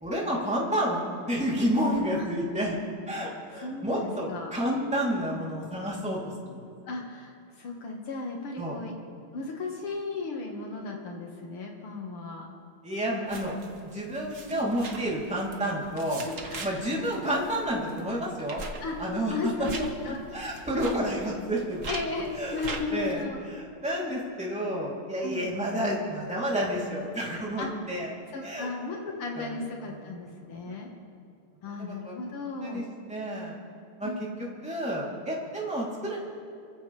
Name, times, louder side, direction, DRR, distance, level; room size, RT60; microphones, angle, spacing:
voice 1, 0.0-2.8 3.1-6.6 8.6-8.8 12.8-13.6 13.8-16.3 16.6-18.6 19.0-19.5 19.8-21.9 22.3-28.1 28.4-28.7 29.3-29.9 30.7-30.8 31.6-32.1 32.6-33.6 34.0-36.2, equal, 5° right, -5 dB, 3.1 m, -30 dB
voice 2, 3.5-4.5 6.9-8.9 9.3-12.5 16.2-16.9 17.3-18.1 18.8-19.0 19.3-20.2 21.9-23.4 25.2-25.4 27.6-27.7 28.0-30.9 31.6-32.9 34.0-34.2, left 3 dB, 80° left, 0 dB, 2.5 m, -35 dB
sound 1, 13.3-23.3, right 3 dB, 40° right, 1.5 m, -42 dB
27.5 x 14.5 x 3.4 m, 2.6 s
omnidirectional pair, 2.4 m